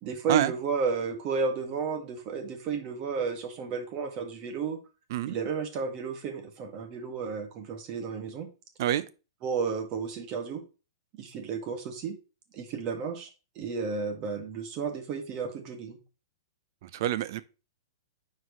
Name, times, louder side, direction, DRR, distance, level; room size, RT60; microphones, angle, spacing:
voice 1, 0.0-4.8 5.3-8.5 9.4-10.6 11.2-12.2 12.5-13.3 13.6-16.0, right 5 dB, 40° right, 1.8 m, -32 dB
voice 2, 16.8-17.4, right 12 dB, 55° right, 0.7 m, -27 dB
9.2 x 4.7 x 3.2 m
hypercardioid pair, 130°, 2 cm